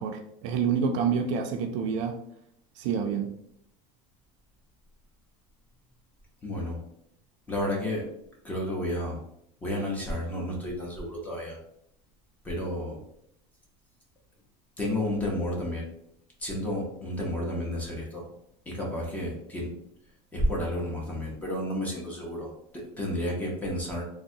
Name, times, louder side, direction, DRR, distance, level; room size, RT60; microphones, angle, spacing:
voice 1, 0.0-2.1 2.8-3.3, right 6 dB, 65° right, 5 dB, 0.4 m, -28 dB
voice 2, 6.4-6.8 7.5-8.1 8.4-9.2 9.6-11.6 12.4-13.0 14.8-15.9 16.4-18.2 18.7-19.7 20.3-24.0, left 1 dB, 10° left, -2 dB, 0.6 m, -31 dB
3.8 x 2.1 x 2.6 m, 0.74 s
cardioid pair, 165°, 17 cm